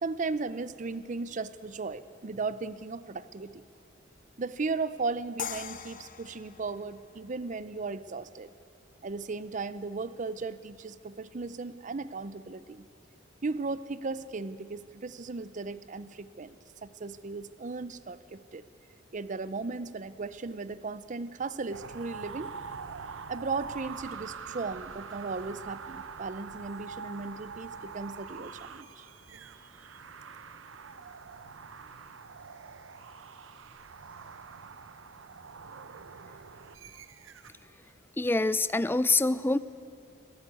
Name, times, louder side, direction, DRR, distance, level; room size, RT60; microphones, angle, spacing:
voice 1, 0.0-3.6 4.4-8.5 9.0-12.8 13.4-16.6 16.8-18.6 19.1-22.5 23.3-29.5, right 4 dB, 40° right, 15 dB, 0.5 m, -36 dB
sound 1, 5.4-8.5, left 8 dB, 45° left, 0.7 m, -42 dB
sound 2, 21.7-37.7, right 5 dB, 75° right, 0.7 m, -45 dB
voice 2, 38.2-39.6, left 2 dB, 10° left, 15 dB, 0.4 m, -25 dB
23.0 x 13.0 x 9.5 m, 2.6 s
head